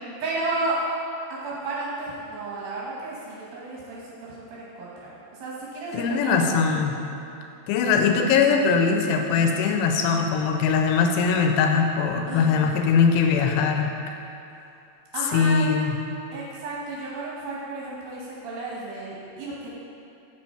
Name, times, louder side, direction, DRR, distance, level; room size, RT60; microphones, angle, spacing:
voice 1, 0.2-0.9 1.3-6.5 12.3-12.8 15.1-15.7 16.3-19.7, right 2 dB, 70° right, -6 dB, 2.6 m, -33 dB
voice 2, 5.9-6.9 7.7-13.9 15.3-15.9, left 5 dB, 85° left, 4 dB, 2.7 m, -21 dB
7.7 x 5.8 x 4.3 m, 2.7 s
omnidirectional pair, 4.8 m